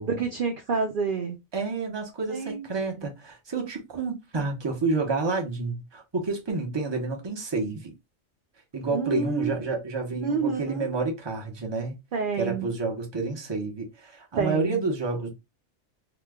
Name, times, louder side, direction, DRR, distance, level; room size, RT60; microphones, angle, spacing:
voice 1, 0.0-1.4 2.3-2.7 2.9-3.1 8.9-9.5 10.1-11.0 12.1-12.7 14.4-14.8, right 5 dB, 55° right, 0.6 m, -29 dB
voice 2, 1.5-7.9 8.7-12.0 12.4-15.3, right 3 dB, 25° right, 0.8 m, -29 dB
2.9 x 2.2 x 3.4 m
omnidirectional pair, 1.2 m